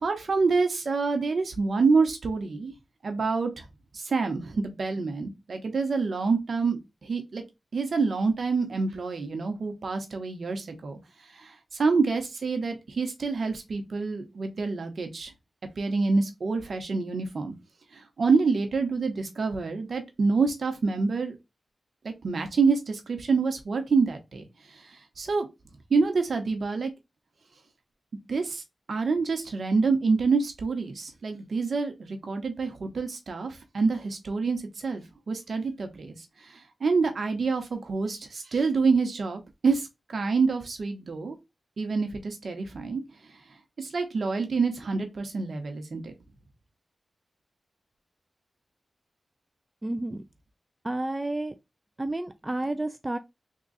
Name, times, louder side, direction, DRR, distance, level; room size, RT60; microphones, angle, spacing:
voice 1, 0.0-2.7 3.0-3.7 3.9-7.4 7.7-11.0 11.3-11.5 11.8-15.3 15.8-17.5 17.9-21.4 22.0-24.4 25.2-25.5 25.9-26.9 28.3-28.6 28.9-36.2 36.5-41.4 41.8-43.0 43.8-46.1, right 4 dB, 70° right, 1.0 m, -27 dB
voice 2, 49.8-50.2 50.8-51.5 52.0-53.2, right 2 dB, 25° right, 0.4 m, -30 dB
3.6 x 2.4 x 4.0 m
cardioid pair, 55°, 0 cm